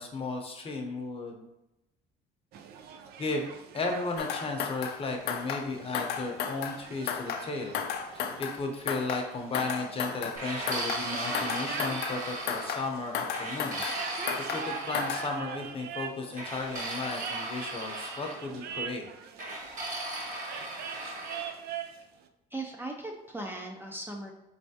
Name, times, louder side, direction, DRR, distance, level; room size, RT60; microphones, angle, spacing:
voice 1, 0.0-1.4 3.2-7.8 8.1-13.8 14.5-19.0, left 3 dB, 35° left, 3 dB, 0.7 m, -35 dB
sound 1, 2.5-22.0, right 7 dB, 70° right, 0.4 m, -43 dB
sound 2, 4.2-5.0 5.3-5.7 5.9-6.8 7.1-7.5 7.7-8.6 8.9-9.3 9.5-10.4 10.7-11.1 11.3-12.2 12.5-12.9 13.1-14.0 14.3-14.7 14.9-15.3, left 8 dB, 75° left, 0.4 m, -34 dB
sound 3, 10.4-12.9 13.3-15.3 16.4-18.4 19.4-21.5, right 1 dB, 50° right, 1.5 m, -37 dB
voice 2, 22.5-24.3, right 2 dB, 10° right, 1 dB, 0.5 m, -38 dB
4.3 x 3.3 x 2.8 m, 0.90 s
cardioid pair, 110°, 17 cm